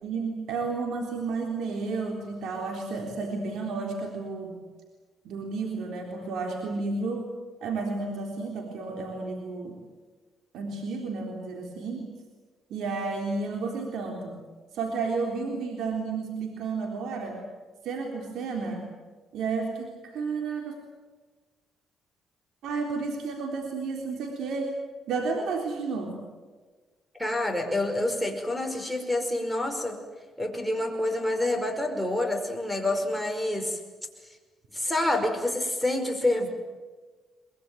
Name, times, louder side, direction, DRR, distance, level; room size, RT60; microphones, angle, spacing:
voice 1, 0.0-4.6 5.2-7.3 7.6-9.8 10.5-12.1 12.7-14.4 14.7-17.4 17.8-18.8 19.3-20.7 22.6-24.7 25.1-26.2, right 4 dB, 75° right, 2 dB, 3.7 m, -32 dB
voice 2, 27.2-30.0 30.4-33.8 34.7-36.5, left 1 dB, ahead, 2 dB, 5.2 m, -27 dB
23.0 x 22.0 x 9.2 m, 1.3 s
cardioid pair, 90°, 0 cm